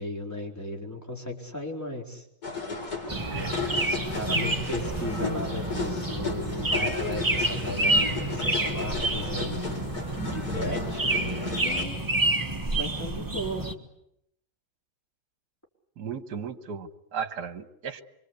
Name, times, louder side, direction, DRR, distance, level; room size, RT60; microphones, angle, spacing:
voice 1, 0.0-2.2 3.9-9.9 10.2-12.0 12.7-13.6, left 1 dB, 10° left, 0 dB, 4.4 m, -36 dB
sound 1, 2.4-11.8, left 3 dB, 60° left, 4.7 m, -34 dB
sound 2, 3.1-13.7, right 2 dB, 10° right, 1.5 m, -29 dB
voice 2, 3.1-3.5 16.0-18.0, right 6 dB, 65° right, 10 dB, 1.9 m, -36 dB
26.5 x 24.5 x 8.3 m, 0.78 s
omnidirectional pair, 1.9 m